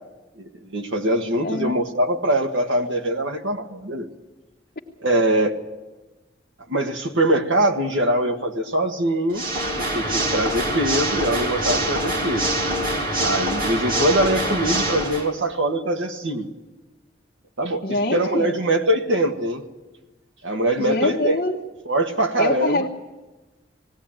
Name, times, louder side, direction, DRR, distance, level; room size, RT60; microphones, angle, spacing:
voice 1, 0.4-4.1 5.0-5.6 6.7-9.4 9.8-12.5 13.2-16.5 17.6-19.6 20.4-21.4 21.9-22.8, right 1 dB, 90° right, 5 dB, 1.6 m, -23 dB
voice 2, 1.4-1.8 17.8-18.5 20.8-21.6 22.4-22.9, left 1 dB, 45° left, -2 dB, 1.1 m, -24 dB
Water / Mechanisms, 9.3-15.3, right 1 dB, 50° right, 2.9 m, -24 dB
19.5 x 16.5 x 8.9 m, 1.2 s
head